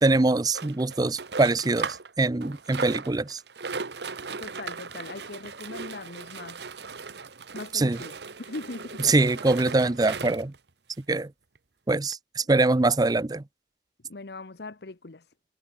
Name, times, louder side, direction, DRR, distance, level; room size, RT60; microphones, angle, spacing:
voice 1, 0.0-3.4 7.7-8.0 9.0-10.5 11.1-11.3 11.9-13.4, right 2 dB, 20° right, 0.5 m, -23 dB
sound 1, 0.5-2.1 2.4-10.6 11.2-11.3 11.6-11.7 12.1-12.2, right 4 dB, 65° right, 1.3 m, -37 dB
voice 2, 4.3-6.6 7.5-9.1 14.1-15.3, left 3 dB, 65° left, 1.0 m, -40 dB
head